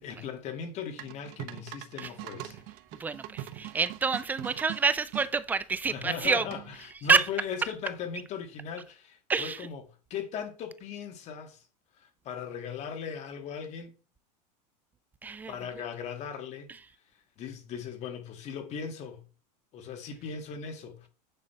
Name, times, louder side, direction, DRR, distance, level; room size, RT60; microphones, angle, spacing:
voice 1, 0.0-2.6 5.9-9.8 10.1-11.6 12.0-13.9 15.5-16.7 17.4-19.2 19.7-21.1, left 7 dB, 35° left, 2.1 m, -38 dB
sound 1, 1.0-5.3 6.5-6.9, right 14 dB, 45° right, 1.0 m, -42 dB
voice 2, 3.0-6.5 7.1-7.3 9.3-9.6 15.2-15.5, right 5 dB, 10° right, 0.3 m, -27 dB
9.6 x 3.9 x 5.7 m
supercardioid pair, 160°, 21 cm